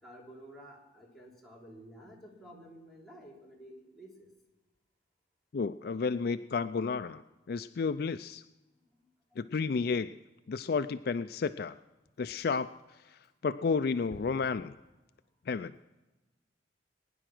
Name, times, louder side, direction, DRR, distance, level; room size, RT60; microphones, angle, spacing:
voice 1, 0.0-4.3 8.8-9.4 14.1-14.2, equal, ahead, -5 dB, 3.3 m, -52 dB
voice 2, 5.5-7.2 7.5-8.4 9.4-10.1 10.5-11.7 12.2-12.7 13.4-14.7 15.5-15.7, left 5 dB, 60° left, 12 dB, 0.4 m, -31 dB
20.5 x 10.0 x 6.0 m, 1.1 s
head